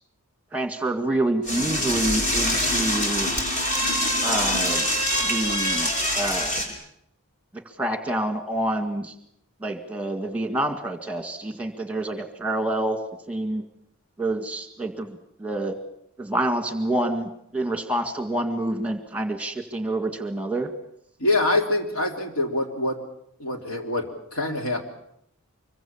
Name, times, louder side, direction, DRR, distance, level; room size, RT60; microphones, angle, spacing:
voice 1, 0.5-3.3 4.2-4.9 5.2-6.5 7.8-9.1 9.6-13.0 13.3-13.6 14.2-15.8 16.2-20.7, right 1 dB, 5° right, 7 dB, 2.0 m, -27 dB
Door / Toilet flush, 1.4-6.7, equal, 35° left, 4.9 m, -24 dB
voice 2, 21.2-23.0 23.4-24.8, left 2 dB, 75° left, 3 dB, 3.6 m, -25 dB
25.5 x 23.5 x 7.3 m, 0.73 s
head